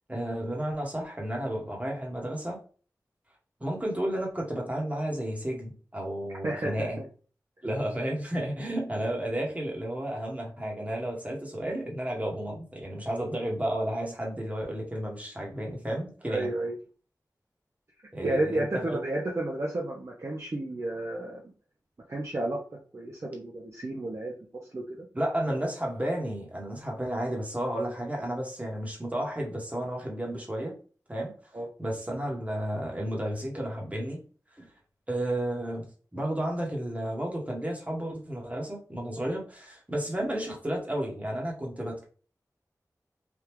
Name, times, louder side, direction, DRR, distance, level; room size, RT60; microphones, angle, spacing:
voice 1, 0.1-2.6 3.6-7.0 7.6-16.5 18.1-19.0 25.1-30.7 31.1-31.3 31.8-34.2 34.6-34.7 35.1-42.0, right 1 dB, 20° right, -1 dB, 1.1 m, -32 dB
voice 2, 6.4-7.0 16.3-16.7 18.2-21.4 22.1-22.6 22.9-24.3 24.7-25.1 31.5-31.7, right 1 dB, 45° right, -1 dB, 0.6 m, -31 dB
3.4 x 2.3 x 2.9 m, 0.39 s
wide cardioid pair, 85°, 7 cm